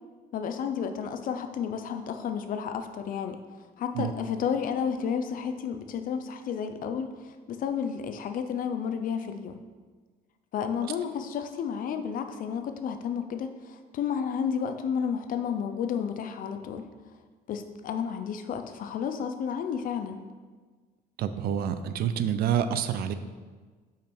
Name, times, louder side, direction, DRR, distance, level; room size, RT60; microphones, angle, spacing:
voice 1, 0.3-3.4 3.8-7.1 7.5-9.6 10.5-16.8 17.5-20.2, left 7 dB, 55° left, 8 dB, 0.5 m, -31 dB
voice 2, 21.2-23.1, right 9 dB, 65° right, 10 dB, 0.5 m, -27 dB
5.2 x 5.1 x 4.4 m, 1.4 s
cardioid pair, 110°, 17 cm